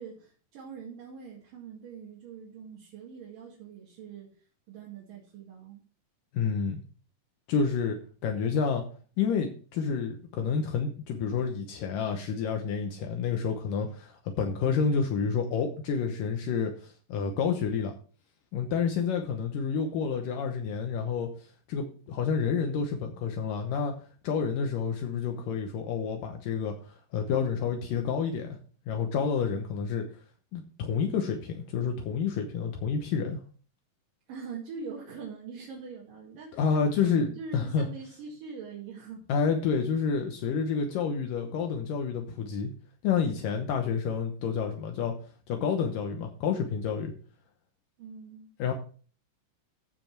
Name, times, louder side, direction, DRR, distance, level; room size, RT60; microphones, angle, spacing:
voice 1, 0.0-4.3 4.7-5.8 34.3-39.2 48.0-48.5, right 5 dB, 70° right, -4 dB, 3.7 m, -43 dB
voice 2, 6.3-6.8 7.5-8.8 9.2-17.9 18.5-23.9 24.2-28.5 28.9-30.1 30.5-33.4 36.5-37.9 39.3-42.7 43.0-45.1 45.5-47.1 48.6-48.7, left 6 dB, 75° left, 3 dB, 2.6 m, -29 dB
14.5 x 5.2 x 4.7 m, 0.40 s
omnidirectional pair, 4.1 m